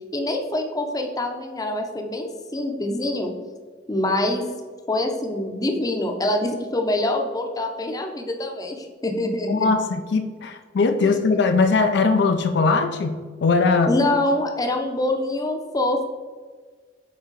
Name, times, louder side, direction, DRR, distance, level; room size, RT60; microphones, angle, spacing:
voice 1, 0.1-3.3 3.9-4.5 4.9-9.7 11.0-11.2 13.9-16.0, left 1 dB, 20° left, 3 dB, 0.6 m, -25 dB
voice 2, 9.5-14.0, left 4 dB, 65° left, 7 dB, 0.4 m, -20 dB
6.2 x 4.2 x 4.0 m, 1.5 s
head